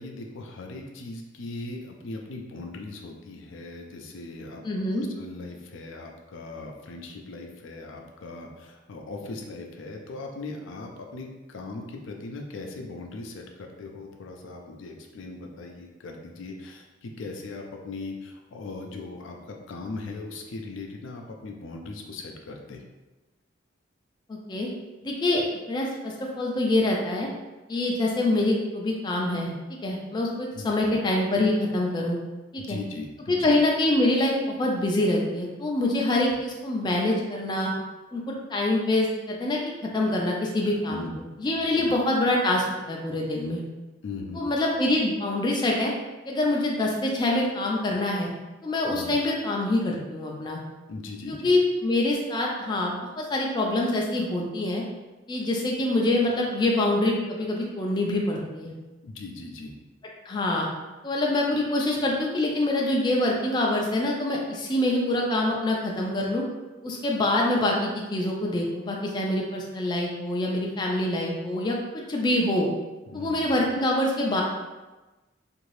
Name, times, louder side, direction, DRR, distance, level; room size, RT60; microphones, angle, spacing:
voice 1, 0.0-22.8 30.5-30.9 32.6-33.6 40.9-41.2 41.8-41.9 44.0-44.4 48.9-49.1 50.9-51.5 59.0-59.7 73.1-73.5, left 3 dB, 85° left, 2 dB, 0.4 m, -39 dB
voice 2, 4.6-5.0 24.3-24.7 25.0-27.3 27.7-29.5 29.8-32.2 32.5-32.8 33.3-37.7 38.1-43.6 44.3-45.9 46.3-48.3 48.6-50.6 51.3-54.8 55.3-58.7 60.3-60.7 61.0-66.4 66.8-72.7 73.1-74.4, left 1 dB, 25° left, -1 dB, 0.3 m, -25 dB
2.7 x 2.5 x 3.1 m, 1.1 s
head